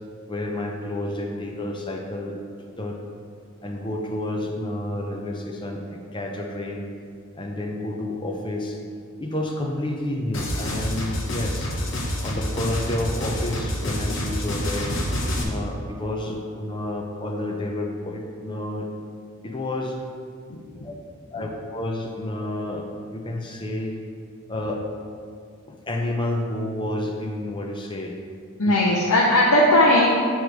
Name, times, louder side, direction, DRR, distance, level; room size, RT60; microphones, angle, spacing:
voice 1, 0.3-2.4 2.8-3.0 3.6-6.9 7.3-8.8 9.2-11.7 12.2-14.9 15.4-18.9 19.4-20.0 20.8-20.9 21.3-23.9 24.5-24.8 25.7-28.2 28.6-28.7, left 1 dB, 20° left, 2 dB, 0.5 m, -30 dB
sound 1, 10.3-15.4, equal, 55° left, 0.9 m, -27 dB
voice 2, 28.6-30.1, left 1 dB, 90° left, -4 dB, 0.7 m, -17 dB
8.1 x 3.1 x 5.0 m, 2.3 s
head